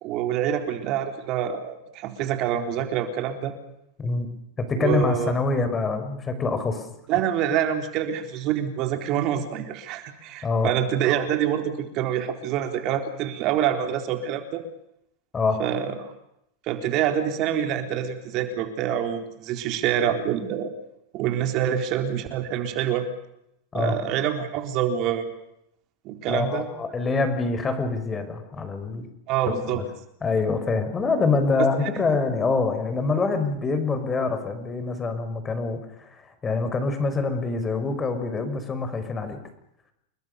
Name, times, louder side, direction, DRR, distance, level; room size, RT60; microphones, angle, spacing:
voice 1, 0.0-3.5 4.8-5.3 7.1-14.6 15.6-16.1 16.7-20.7 21.1-23.1 23.7-25.3 26.0-26.7 29.3-29.8 31.9-32.0, right 9 dB, 45° right, 7 dB, 4.0 m, -26 dB
voice 2, 4.6-6.9 10.4-10.7 15.3-15.6 23.7-23.9 26.3-29.1 29.7-29.8 30.2-39.4, left 3 dB, 20° left, 9 dB, 5.5 m, -25 dB
29.5 x 21.5 x 6.8 m, 0.79 s
supercardioid pair, 130°, 0 cm